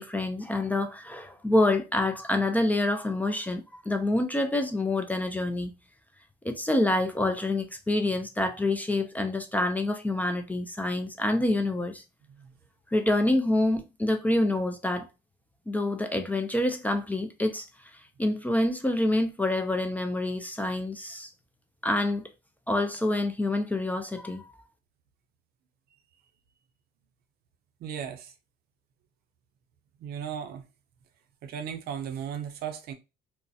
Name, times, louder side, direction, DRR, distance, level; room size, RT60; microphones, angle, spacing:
voice 1, 0.0-5.7 6.4-12.0 12.9-15.1 15.7-21.3 21.8-22.3 22.7-24.4, left 1 dB, 10° left, 0.3 m, -27 dB
voice 2, 27.8-28.3 30.0-30.6 31.4-32.9, right 8 dB, 70° right, 0.5 m, -36 dB
2.3 x 2.0 x 2.6 m
cardioid pair, 110°, 17 cm